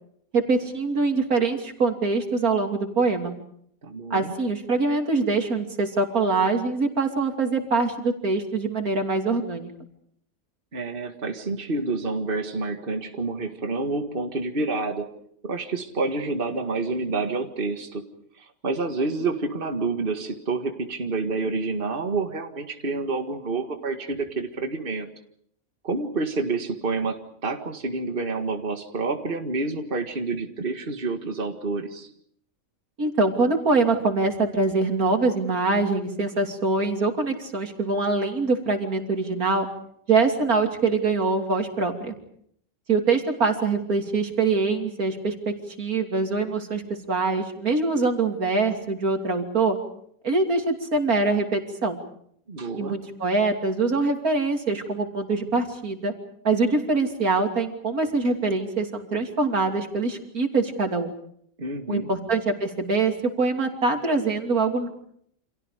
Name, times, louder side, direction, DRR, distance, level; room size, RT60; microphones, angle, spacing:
voice 1, 0.3-3.3 4.1-9.7 33.0-39.7 40.1-42.1 42.9-46.8 47.1-49.8 50.2-52.0 52.8-56.1 56.5-61.1 61.9-64.9, right 3 dB, 85° right, 4 dB, 3.4 m, -24 dB
voice 2, 3.8-4.3 10.7-15.1 15.4-18.0 18.4-25.1 25.8-32.1 52.5-53.0 61.6-62.1, right 3 dB, 40° right, 5 dB, 2.0 m, -28 dB
29.5 x 27.0 x 5.1 m, 0.66 s
omnidirectional pair, 1.5 m